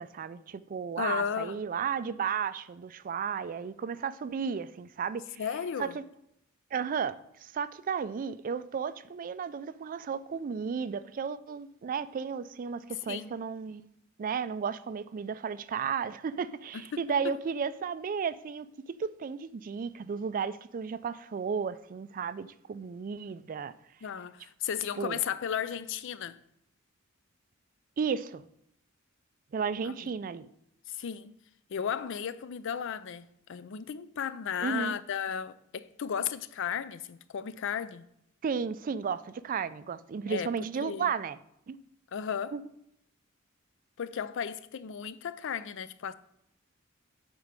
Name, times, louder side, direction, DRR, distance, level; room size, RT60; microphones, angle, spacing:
voice 1, 0.0-5.2 5.8-6.0 6.7-13.9 14.2-18.7 19.0-23.7 25.0-25.2 28.0-28.5 29.5-30.5 34.6-34.9 38.4-41.4 41.7-41.8 42.5-42.6, right 6 dB, 40° right, 0.3 m, -34 dB
voice 2, 1.0-1.6 5.4-6.0 13.1-13.4 16.7-17.4 24.0-26.4 29.8-30.1 30.9-31.3 31.7-38.1 40.3-40.5 40.8-41.1 42.1-42.6 44.0-46.1, left 7 dB, 65° left, 0.4 m, -35 dB
8.0 x 4.5 x 5.2 m
head